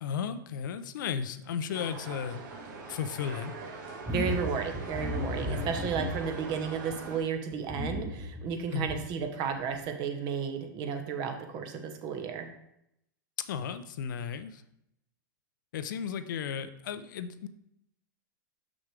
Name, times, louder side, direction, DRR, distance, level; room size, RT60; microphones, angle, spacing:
voice 1, 0.0-2.4 2.9-3.5 5.4-5.7 8.7-8.9 13.5-14.6 15.7-17.5, left 7 dB, 70° left, 11 dB, 0.5 m, -34 dB
sound 1, 1.7-7.2, right 4 dB, 65° right, 1.3 m, -42 dB
sound 2, 4.0-7.1 7.5-9.2 9.7-9.9, left 1 dB, 5° right, 1.2 m, -35 dB
voice 2, 4.1-12.5, right 6 dB, 40° right, 5 dB, 1.0 m, -33 dB
6.2 x 6.0 x 3.3 m, 0.79 s
hypercardioid pair, 110°, 11 cm